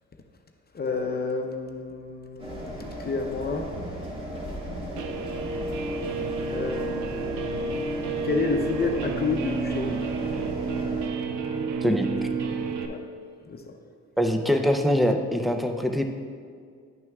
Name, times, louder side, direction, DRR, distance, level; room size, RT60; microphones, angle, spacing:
voice 1, 0.7-3.7 6.5-10.0 12.9-13.0 13.5-13.6, left 3 dB, 30° left, 3 dB, 0.7 m, -30 dB
sound 1, 2.4-11.1, equal, 20° right, 1.5 m, -37 dB
Guitar, 5.0-12.9, right 4 dB, 90° right, 0.6 m, -30 dB
voice 2, 14.2-16.0, equal, ahead, 4 dB, 0.5 m, -23 dB
10.5 x 6.1 x 2.4 m, 2.1 s
cardioid pair, 90°, 30 cm